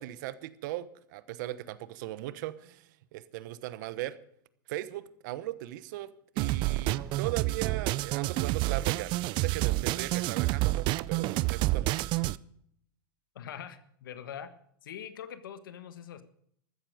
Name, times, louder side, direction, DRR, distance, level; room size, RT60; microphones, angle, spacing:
voice 1, 0.0-4.2 4.7-12.0, right 15 dB, 65° right, 15 dB, 1.1 m, -38 dB
sound 1, 6.4-12.4, right 18 dB, 45° right, 0.5 m, -29 dB
Explosion, 6.9-8.6, right 1 dB, ahead, 1.2 m, -51 dB
voice 2, 13.3-14.5 14.8-16.2, left 9 dB, 80° left, 11 dB, 1.5 m, -43 dB
14.5 x 13.0 x 5.1 m, 0.70 s
hypercardioid pair, 105°, 11 cm